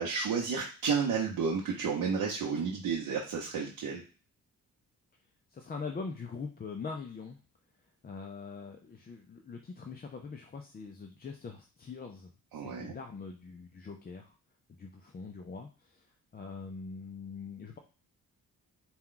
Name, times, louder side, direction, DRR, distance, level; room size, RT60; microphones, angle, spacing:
voice 1, 0.0-4.0 12.5-12.9, right 5 dB, 85° right, -2 dB, 0.8 m, -31 dB
voice 2, 5.5-7.4 8.0-14.3 14.8-17.8, left 4 dB, 25° left, 3 dB, 0.4 m, -43 dB
4.2 x 2.3 x 3.7 m, 0.35 s
cardioid pair, 100°, 34 cm